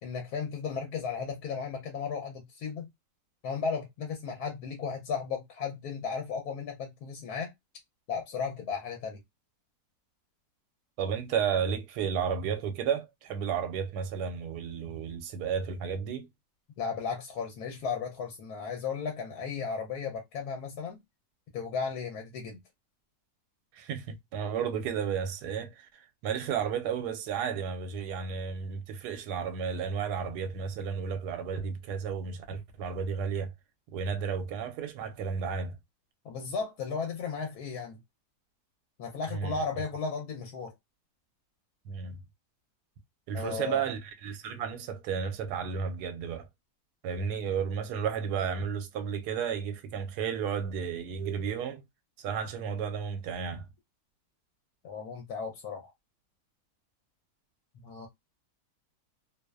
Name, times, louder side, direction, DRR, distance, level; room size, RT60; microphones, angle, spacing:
voice 1, 0.0-2.9 3.4-7.5 8.1-9.2 16.8-21.0 21.5-22.6 36.2-38.0 39.0-40.7 43.3-43.8 54.8-55.9 57.8-58.1, left 5 dB, 75° left, 1.1 m, -35 dB
voice 2, 11.0-16.3 23.7-33.5 33.9-35.8 39.3-39.6 41.9-42.2 43.3-46.5 47.0-51.8 52.2-53.7, right 7 dB, 85° right, 1.1 m, -33 dB
2.8 x 2.0 x 2.2 m
omnidirectional pair, 1.7 m